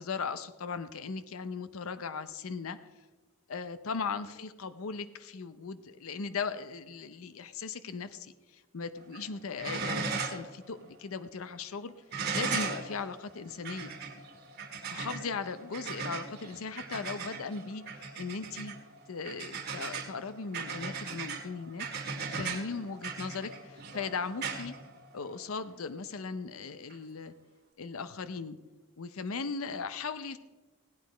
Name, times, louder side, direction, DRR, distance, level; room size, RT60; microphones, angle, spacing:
voice 1, 0.0-2.8 3.5-11.9 12.3-13.9 14.9-18.7 19.1-24.7 25.1-27.3 27.8-28.6 29.0-30.4, left 5 dB, 90° left, 12 dB, 0.6 m, -38 dB
sound 1, 9.0-9.3 9.5-10.5 10.8-10.9 12.1-25.5 26.9-27.0, right 5 dB, 50° right, 1.9 m, -38 dB
17.0 x 9.4 x 5.0 m, 1.2 s
head